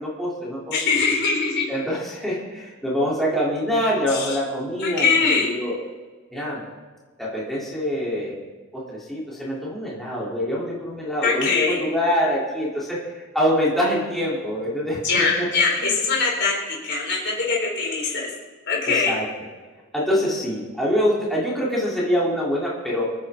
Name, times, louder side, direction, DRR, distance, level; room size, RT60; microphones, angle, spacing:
voice 1, 0.0-0.8 1.7-5.1 5.4-5.8 6.3-6.6 7.2-8.4 8.7-13.0 13.3-15.5 15.8-16.0 18.9-19.2 19.9-23.1, equal, ahead, -7 dB, 3.7 m, -25 dB
voice 2, 0.7-1.6 4.1-4.4 4.8-5.6 11.2-11.8 15.0-16.5 16.8-18.3 18.7-19.2, left 4 dB, 55° left, -2 dB, 4.6 m, -22 dB
26.5 x 9.9 x 3.9 m, 1.4 s
head